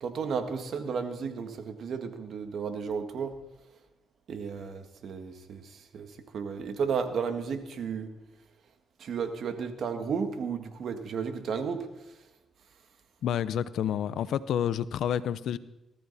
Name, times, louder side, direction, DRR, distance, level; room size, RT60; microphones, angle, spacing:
voice 1, 0.0-3.3 4.3-6.1 6.3-8.1 9.0-11.9, right 6 dB, 65° right, 7 dB, 1.8 m, -33 dB
voice 2, 13.2-15.6, left 9 dB, 75° left, 16 dB, 0.6 m, -29 dB
19.0 x 13.5 x 4.2 m, 0.94 s
cardioid pair, 75°, 0 cm